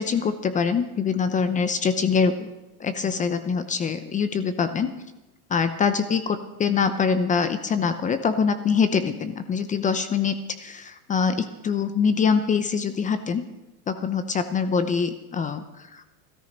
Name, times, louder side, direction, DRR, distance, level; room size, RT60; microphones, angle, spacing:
voice 1, 0.0-2.5 2.8-4.9 5.5-13.4 13.9-16.0, left 6 dB, 15° left, 11 dB, 0.7 m, -24 dB
17.5 x 13.5 x 5.3 m, 1.0 s
supercardioid pair, 135°, 44 cm